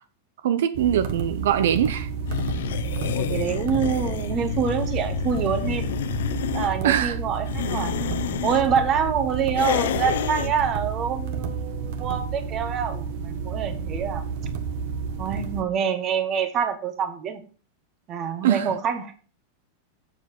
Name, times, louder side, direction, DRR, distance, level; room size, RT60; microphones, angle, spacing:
voice 1, 0.4-2.1 6.8-7.2 18.4-18.7, right 10 dB, 80° right, 0.7 m, -22 dB
sound 1, 0.7-15.6, right 6 dB, 55° right, 1.3 m, -31 dB
sound 2, 2.3-6.7 7.3-8.6 9.5-10.5, left 11 dB, 80° left, 0.7 m, -29 dB
voice 2, 3.1-5.9 6.5-7.9 8.4-14.2 15.2-17.4 18.1-19.1, right 7 dB, 30° right, 1.3 m, -26 dB
7.6 x 6.5 x 5.3 m
supercardioid pair, 155°, 0 cm